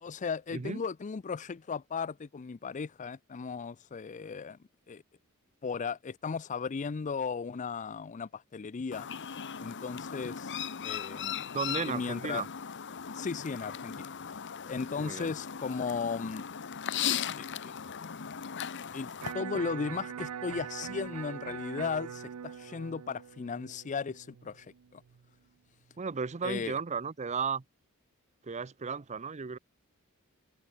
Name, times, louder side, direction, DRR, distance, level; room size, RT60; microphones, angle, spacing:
voice 1, 0.0-4.6 4.9-5.0 5.6-9.1 9.6-10.6 10.8-11.4 11.8-12.4 13.1-14.2 14.6-16.5 17.4-17.7 18.9-25.0 26.4-26.8, left 5 dB, 35° left, 0.4 m, -36 dB
voice 2, 0.5-0.8 11.5-12.5 15.0-15.3 26.0-27.6 28.4-29.6, right 5 dB, 30° right, 0.6 m, -34 dB
Chirp tweet, 8.9-19.3, left 8 dB, 55° left, 1.0 m, -38 dB
Electric guitar, 19.2-25.3, right 8 dB, 85° right, 0.5 m, -42 dB
head